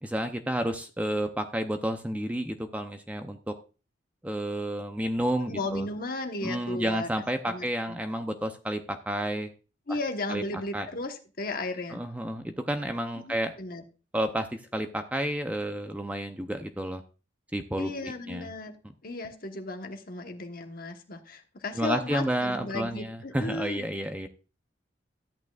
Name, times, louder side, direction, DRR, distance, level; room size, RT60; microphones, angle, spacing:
voice 1, 0.0-3.5 4.2-5.9 6.4-9.5 10.3-10.4 10.7-10.9 11.9-13.5 14.1-17.0 17.5-18.5 21.8-24.3, right 1 dB, 5° right, 7 dB, 0.6 m, -31 dB
voice 2, 5.5-7.1 7.5-8.0 9.9-12.0 13.2-13.8 17.8-18.8 19.0-23.9, left 2 dB, 50° left, 5 dB, 1.2 m, -35 dB
13.0 x 8.8 x 2.4 m, 0.34 s
head